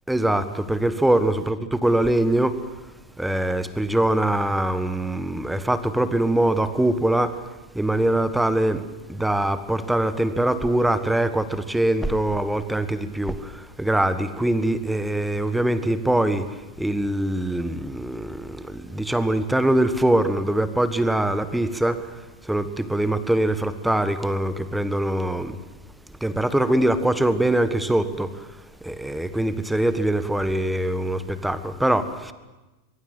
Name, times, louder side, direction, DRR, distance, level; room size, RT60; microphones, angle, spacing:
voice 1, 0.1-2.6 3.2-7.3 7.7-8.8 9.1-13.5 13.8-16.4 16.8-22.0 22.5-25.6 26.2-28.3 28.8-32.3, right 1 dB, 5° right, 12 dB, 1.5 m, -23 dB
23.5 x 23.0 x 7.7 m, 1.1 s
figure-of-eight pair, 90°, 0 cm